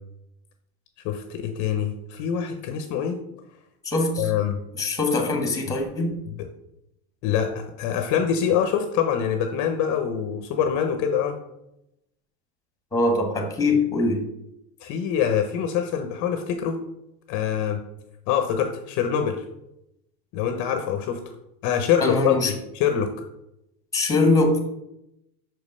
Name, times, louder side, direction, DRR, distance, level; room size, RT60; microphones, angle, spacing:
voice 1, 1.0-3.2 4.2-4.6 6.4-6.5 7.2-11.4 14.8-16.8 17.3-17.8 18.3-19.4 20.3-21.2 21.6-22.4 22.7-23.1, left 8 dB, 40° left, 6 dB, 0.7 m, -24 dB
voice 2, 3.8-4.3 4.8-6.1 12.9-14.2 22.0-22.5 23.9-24.6, left 2 dB, 10° left, 3 dB, 1.3 m, -22 dB
6.0 x 5.2 x 5.4 m, 0.84 s
supercardioid pair, 155°, 43 cm